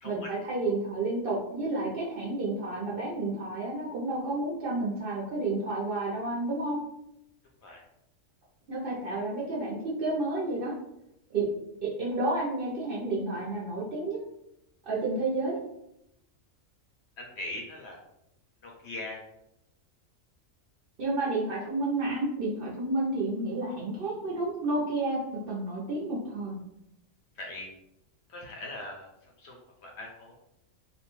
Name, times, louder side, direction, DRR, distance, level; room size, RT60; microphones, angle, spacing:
voice 1, 0.0-6.8 8.7-10.7 11.3-11.4 11.8-14.2 14.8-15.6 21.0-25.2 25.5-26.6, right 2 dB, 55° right, -5 dB, 0.7 m, -30 dB
voice 2, 17.2-18.0 18.6-19.2 27.4-27.7 28.3-29.1 29.4-30.3, left 2 dB, 65° left, -1 dB, 0.7 m, -40 dB
2.6 x 2.2 x 3.0 m, 0.83 s
omnidirectional pair, 1.4 m